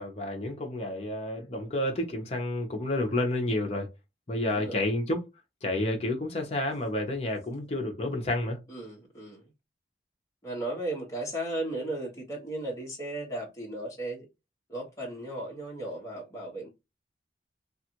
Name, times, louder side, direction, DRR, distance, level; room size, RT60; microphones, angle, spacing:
voice 1, 0.0-3.9 4.3-5.2 5.6-8.6, left 1 dB, 35° left, 0.7 m, -30 dB
voice 2, 4.5-4.8 8.7-9.5 10.4-14.3 14.7-16.7, right 1 dB, 15° left, 1.0 m, -35 dB
2.5 x 2.4 x 2.8 m
head